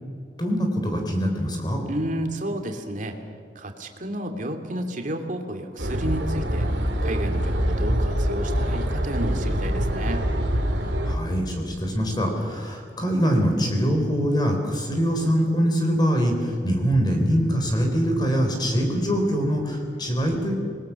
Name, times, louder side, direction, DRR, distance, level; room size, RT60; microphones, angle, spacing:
voice 1, 0.4-1.8 10.8-20.5, equal, 25° left, 3 dB, 4.0 m, -23 dB
voice 2, 1.9-3.1 3.5-6.7 7.0-10.2, right 1 dB, 50° right, 5 dB, 2.6 m, -31 dB
sound 1, 5.8-11.1, equal, 80° right, 2.9 m, -24 dB
26.5 x 20.5 x 7.0 m, 2.3 s
head